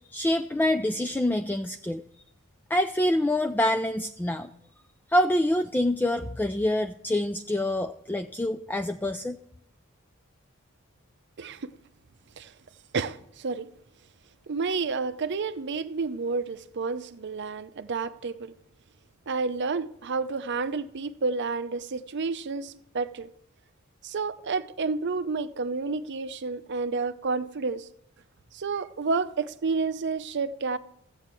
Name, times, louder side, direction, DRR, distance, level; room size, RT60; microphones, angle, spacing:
voice 1, 0.1-2.0 2.7-4.5 5.1-9.4, left 1 dB, 10° left, 0.3 m, -26 dB
voice 2, 11.4-11.7 12.4-12.5 12.9-13.7 14.5-18.5 19.3-23.3 24.0-27.9 28.5-30.8, right 4 dB, 55° right, 0.6 m, -30 dB
14.0 x 8.5 x 4.5 m
head